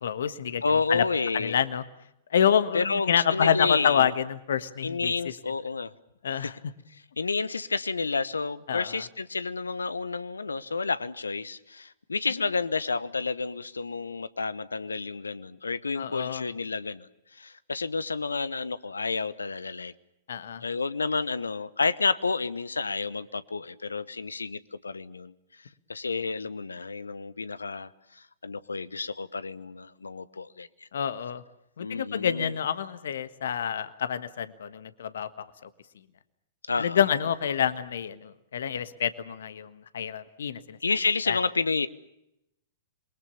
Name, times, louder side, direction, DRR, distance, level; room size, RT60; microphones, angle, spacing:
voice 1, 0.0-0.6 0.9-1.0 1.3-1.8 2.3-5.1 6.2-6.5 8.7-9.0 16.0-16.5 20.3-20.6 30.9-31.4 31.8-35.4 36.8-40.8 41.3-41.4, left 8 dB, 65° left, 1.5 m, -27 dB
voice 2, 0.6-1.6 2.7-4.1 4.8-5.9 6.3-6.5 7.2-19.9 20.6-25.3 25.9-30.7 31.8-32.5 36.7-37.0 40.8-41.9, left 4 dB, 80° left, 1.1 m, -30 dB
28.0 x 22.5 x 7.1 m
figure-of-eight pair, 105°, 0 cm